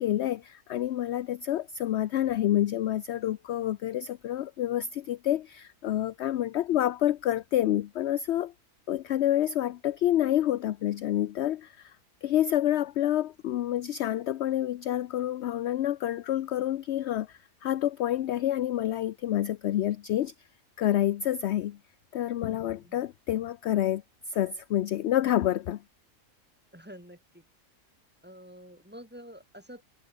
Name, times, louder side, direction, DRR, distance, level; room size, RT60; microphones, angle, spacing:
voice 1, 0.0-8.5 8.9-11.9 12.2-20.3 20.8-21.8 22.1-24.0 24.3-25.8, left 12 dB, 65° left, 0.8 m, -28 dB
voice 2, 22.5-23.0 26.7-27.4 28.2-29.8, equal, 5° right, 5.2 m, -48 dB
omnidirectional pair, 1.4 m